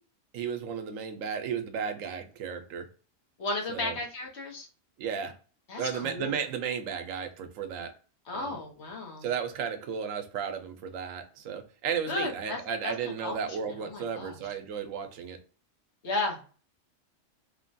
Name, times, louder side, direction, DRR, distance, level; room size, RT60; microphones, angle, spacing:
voice 1, 0.3-2.9 3.7-4.0 5.0-5.4 5.8-7.9 8.3-8.6 9.2-15.4, right 7 dB, 80° right, 1.0 m, -34 dB
voice 2, 3.4-4.7 5.7-6.4 8.3-9.3 12.1-14.5 16.0-16.4, left 2 dB, 60° left, 1.1 m, -35 dB
3.0 x 2.2 x 2.5 m
omnidirectional pair, 1.3 m